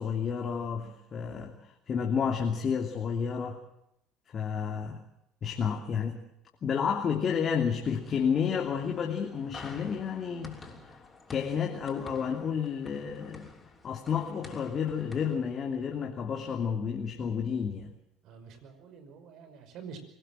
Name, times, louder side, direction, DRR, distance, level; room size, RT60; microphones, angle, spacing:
voice 1, 0.0-3.6 4.3-5.0 5.4-6.2 6.6-10.7 11.3-13.5 13.8-17.9, left 7 dB, 45° left, 2 dB, 2.9 m, -31 dB
sound 1, 7.8-15.4, left 3 dB, 25° left, 6.2 m, -50 dB
voice 2, 18.2-20.0, right 6 dB, 60° right, 8 dB, 5.6 m, -47 dB
25.0 x 18.0 x 7.7 m, 0.78 s
hypercardioid pair, 70°, 0 cm